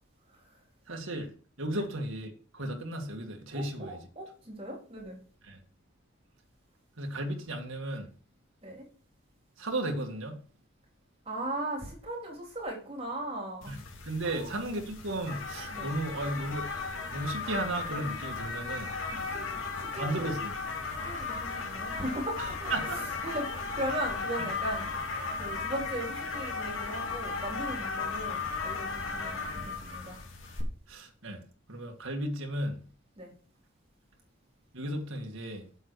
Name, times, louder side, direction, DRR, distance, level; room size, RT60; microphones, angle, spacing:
voice 1, 0.9-1.3 1.6-4.0 5.5-5.6 7.0-8.1 9.6-10.4 13.7-13.8 14.0-16.7 17.1-18.9 20.0-20.5 22.4-23.0 30.9-31.4 31.7-32.8 34.7-35.7, right 1 dB, 80° right, 2.0 m, -34 dB
voice 2, 3.5-5.2 8.6-8.9 11.3-13.8 14.2-14.6 15.7-15.9 19.1-20.4 20.9-24.9 25.4-30.2 33.2-33.3, right 1 dB, 30° right, 3.8 m, -38 dB
sound 1, 13.6-30.6, left 4 dB, 90° left, 2.7 m, -36 dB
7.9 x 7.7 x 4.7 m
head